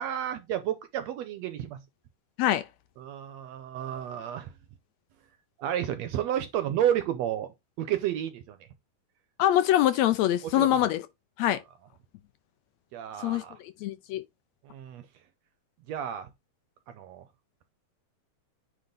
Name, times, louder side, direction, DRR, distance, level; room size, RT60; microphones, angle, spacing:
voice 1, 0.0-1.8 3.0-4.5 5.6-7.5 7.8-8.7 10.4-10.7 12.9-13.6 14.6-15.0 15.9-16.3 16.9-17.2, right 10 dB, 75° right, 1.7 m, -31 dB
voice 2, 9.4-11.1 11.4-11.6 13.2-14.2, left 12 dB, 75° left, 1.6 m, -24 dB
9.0 x 3.6 x 3.9 m
omnidirectional pair, 3.6 m